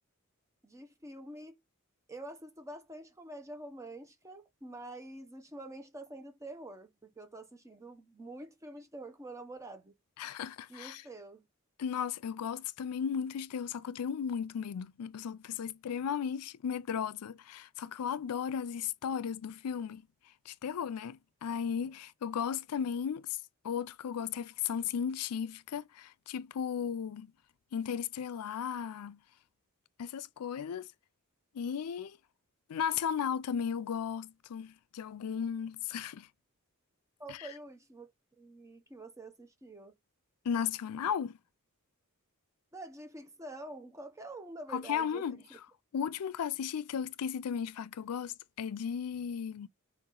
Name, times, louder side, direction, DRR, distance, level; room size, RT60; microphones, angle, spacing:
voice 1, 0.6-1.6 2.1-9.9 10.7-11.4 37.2-38.1 38.4-39.9 42.7-45.6, right 2 dB, 15° right, 0.7 m, -47 dB
voice 2, 10.2-11.0 11.8-20.0 20.5-23.4 23.6-27.3 27.7-29.2 30.0-30.9 31.5-32.2 32.7-36.3 37.3-37.5 40.4-41.4 44.7-45.6 45.9-49.7, left 7 dB, 85° left, 0.4 m, -35 dB
4.7 x 2.9 x 3.7 m
head